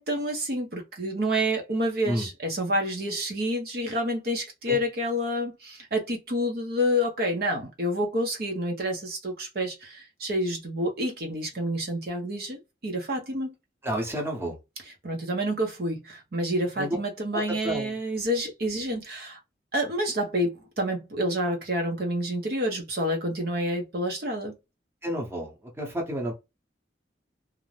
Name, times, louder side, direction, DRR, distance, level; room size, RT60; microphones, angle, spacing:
voice 1, 0.0-13.5 15.0-19.4 19.7-24.5, equal, 55° right, 0.6 m, -28 dB
voice 2, 13.8-14.6 16.8-17.0 17.3-18.0 25.0-26.3, right 1 dB, 15° right, 0.7 m, -30 dB
2.5 x 2.0 x 3.1 m
head